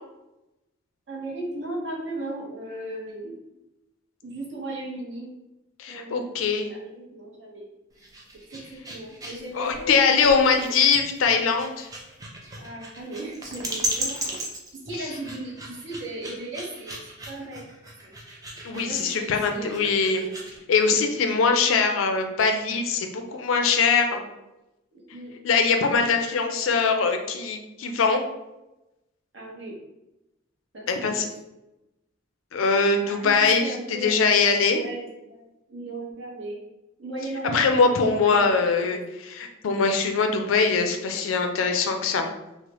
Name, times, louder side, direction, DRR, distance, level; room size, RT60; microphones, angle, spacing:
voice 1, 1.1-3.4 4.2-5.4 5.9-7.7 8.5-10.8 12.6-14.4 14.9-17.6 18.0-18.1 18.7-20.5 24.9-25.4 29.3-29.8 30.7-31.3 33.1-34.2 34.7-36.6 37.0-39.0, right 2 dB, 65° right, -2 dB, 0.8 m, -37 dB
voice 2, 5.8-6.7 9.5-11.9 18.6-20.3 20.7-24.2 25.4-28.2 30.9-31.3 32.5-34.8 37.5-42.3, left 5 dB, 85° left, 5 dB, 0.4 m, -22 dB
sound 1, 7.9-20.6, right 1 dB, 20° right, 0.4 m, -36 dB
3.1 x 2.0 x 2.9 m, 0.96 s
head